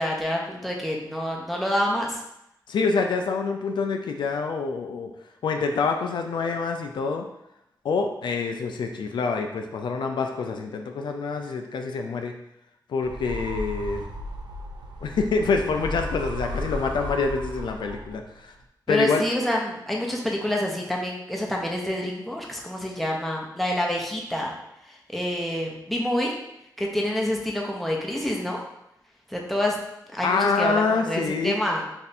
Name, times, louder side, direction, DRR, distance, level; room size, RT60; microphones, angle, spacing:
voice 1, 0.0-2.2 18.9-24.5 24.9-26.3 26.8-28.6 29.3-29.8 30.1-31.8, left 1 dB, ahead, -2 dB, 0.8 m, -27 dB
voice 2, 2.7-5.1 5.4-7.3 7.8-12.3 12.9-14.0 15.0-18.5 18.9-19.2 30.2-31.5, left 4 dB, 85° left, 4 dB, 0.4 m, -26 dB
sound 1, 13.0-18.3, equal, 85° right, 0.4 m, -34 dB
3.4 x 2.6 x 4.1 m, 0.82 s
cardioid pair, 70°, 8 cm